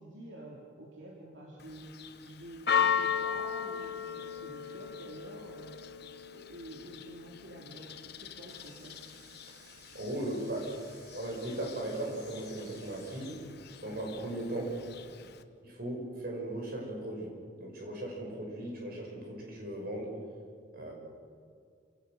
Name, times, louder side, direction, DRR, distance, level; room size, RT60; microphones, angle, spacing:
voice 1, 0.0-5.8 6.3-9.0, right 1 dB, 75° right, -2 dB, 2.9 m, -48 dB
Church bell, 1.6-15.4, left 7 dB, 60° left, 1.1 m, -37 dB
Water tap faucet, 8.3-14.3, equal, 20° right, 6.6 m, -58 dB
voice 2, 9.9-10.8 11.1-13.4 13.8-14.8 15.6-17.3 17.6-20.2 20.7-20.9, right 1 dB, 50° right, 0 dB, 5.9 m, -37 dB
28.5 x 17.0 x 6.6 m, 2.2 s
head